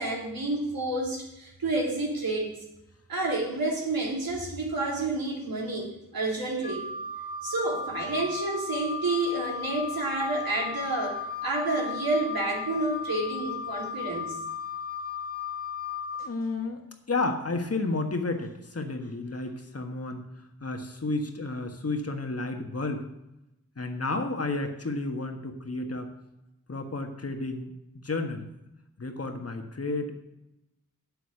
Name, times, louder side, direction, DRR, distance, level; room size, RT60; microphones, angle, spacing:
voice 1, 0.0-2.5 3.1-6.8 7.4-14.4, right 2 dB, 75° right, -1 dB, 3.0 m, -29 dB
Wind instrument woodwind instrument, 6.6-16.3, left 5 dB, 25° left, 1.0 m, -35 dB
voice 2, 16.2-20.3 20.6-23.1 23.8-26.1 26.7-27.7 28.0-28.5 29.0-30.1, left 3 dB, 40° left, 5 dB, 1.6 m, -31 dB
8.3 x 8.1 x 6.5 m, 0.88 s
wide cardioid pair, 60°, 35 cm